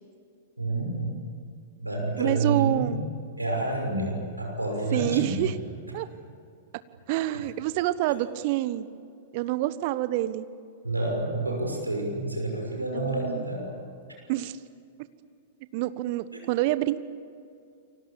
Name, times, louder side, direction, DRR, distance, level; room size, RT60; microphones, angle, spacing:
voice 1, 0.6-1.1 1.8-3.0 3.4-5.5 10.8-13.8, right 2 dB, 85° right, 1 dB, 6.0 m, -29 dB
voice 2, 2.2-3.0 4.9-5.5 5.9-6.1 7.1-8.9 9.3-10.5 12.9-13.4 14.3-14.6 15.7-17.0, right 15 dB, 45° right, 14 dB, 1.2 m, -27 dB
29.5 x 24.5 x 7.3 m, 2.4 s
figure-of-eight pair, 100°, 0 cm